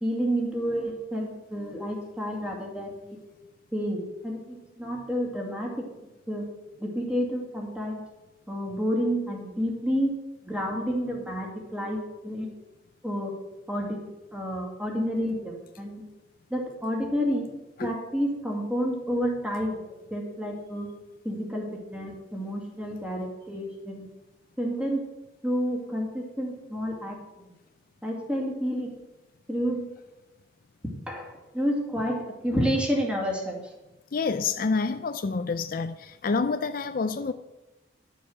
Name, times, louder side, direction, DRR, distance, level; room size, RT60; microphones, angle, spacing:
voice 1, 0.0-3.2 3.7-5.9 6.3-6.5 6.8-8.0 8.5-10.1 10.4-12.5 13.0-13.4 13.7-16.0 16.5-17.5 17.8-19.8 20.1-20.9 21.2-24.1 24.6-25.0 25.4-27.5 28.0-29.0 29.5-29.8 31.1-33.6, equal, 5° right, -1 dB, 2.2 m, -30 dB
voice 2, 34.1-37.3, left 4 dB, 50° left, 10 dB, 0.4 m, -28 dB
11.0 x 7.1 x 6.3 m, 1.0 s
head